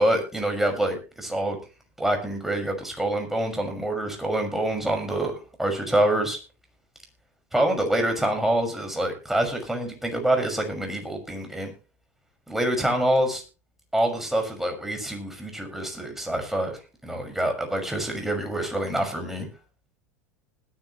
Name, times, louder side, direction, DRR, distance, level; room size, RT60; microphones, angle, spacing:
voice 1, 0.0-1.6 2.0-5.3 5.6-6.4 7.5-11.7 12.5-13.4 13.9-16.8 17.0-19.5, right 1 dB, 5° right, 3 dB, 6.2 m, -26 dB
20.5 x 10.5 x 3.2 m, 0.32 s
hypercardioid pair, 100°, 8 cm